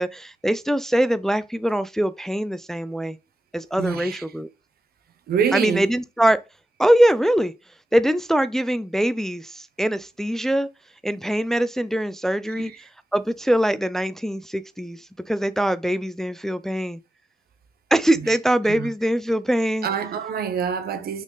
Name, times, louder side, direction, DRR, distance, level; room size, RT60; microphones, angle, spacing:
voice 1, 0.0-3.2 3.5-4.5 5.5-6.4 6.8-7.5 7.9-10.7 11.0-12.7 13.1-17.0 17.9-19.9, right 1 dB, 5° left, 0.3 m, -22 dB
voice 2, 3.8-4.2 5.3-5.9 12.5-12.8 18.7-18.9 19.8-21.2, right 7 dB, 80° right, 1.0 m, -26 dB
5.9 x 4.3 x 4.0 m
wide cardioid pair, 145°, 16 cm